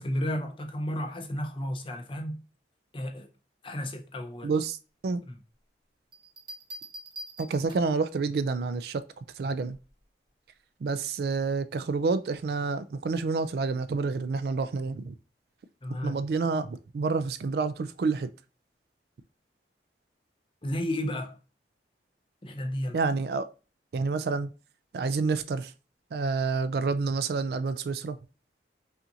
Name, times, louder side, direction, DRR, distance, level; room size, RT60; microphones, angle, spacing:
voice 1, 0.0-2.4 2.9-3.3 3.6-4.5 15.8-16.1 20.6-21.4 22.4-23.0, equal, 30° left, 0.6 m, -32 dB
voice 2, 4.4-4.8 5.0-5.2 7.4-9.0 9.4-9.8 10.8-15.2 16.0-18.3 22.9-23.5 23.9-24.5 24.9-25.7 26.1-28.2, right 4 dB, 60° right, 0.3 m, -28 dB
Bell, 6.1-8.1 9.7-10.0, right 1 dB, 25° right, 0.8 m, -44 dB
5.6 x 2.5 x 2.7 m
head